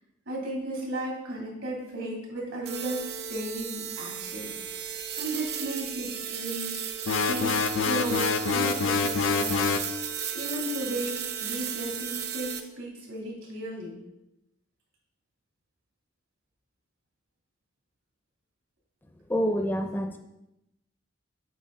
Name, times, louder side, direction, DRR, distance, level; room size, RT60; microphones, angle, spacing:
voice 1, 0.3-4.5 4.9-6.9 7.3-9.7 10.3-14.0, right 1 dB, 80° right, -3 dB, 2.8 m, -35 dB
sound 1, 2.6-12.6, right 8 dB, 50° right, 0.6 m, -35 dB
sound 2, 7.1-9.9, left 5 dB, 70° left, 0.5 m, -26 dB
voice 2, 19.3-20.2, equal, 10° left, 5 dB, 0.4 m, -27 dB
8.2 x 4.6 x 3.7 m, 0.87 s
head